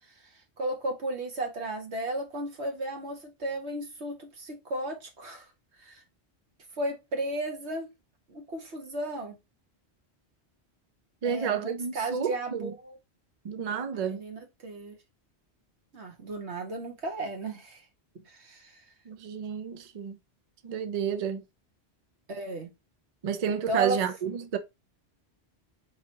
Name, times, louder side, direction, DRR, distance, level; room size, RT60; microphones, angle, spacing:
voice 1, 0.2-5.5 5.8-6.0 6.8-7.9 8.3-9.4 11.2-13.0 14.1-14.9 15.9-17.8 18.3-18.8 22.3-22.7 23.7-24.0, right 2 dB, 80° right, 1.7 m, -34 dB
voice 2, 11.2-12.7 13.4-14.2 19.1-20.2 20.6-21.4 23.2-24.6, right 7 dB, 50° right, 0.5 m, -30 dB
4.8 x 3.6 x 2.8 m
omnidirectional pair, 1.1 m